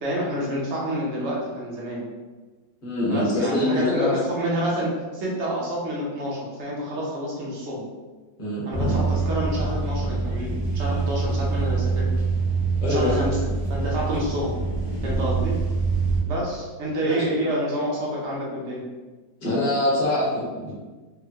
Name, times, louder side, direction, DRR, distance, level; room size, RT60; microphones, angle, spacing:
voice 1, 0.0-2.1 3.1-7.9 8.7-12.0 12.9-13.4 13.7-14.5 15.0-15.5 16.2-18.8, equal, 60° right, -4 dB, 0.7 m, -28 dB
voice 2, 2.8-4.2 8.4-9.0 12.8-13.2 17.0-17.3 19.4-20.7, left 1 dB, 35° left, -6 dB, 0.9 m, -24 dB
sound 1, 8.7-16.2, right 4 dB, 5° left, 0.6 m, -25 dB
3.4 x 2.1 x 2.8 m, 1.3 s
omnidirectional pair, 2.0 m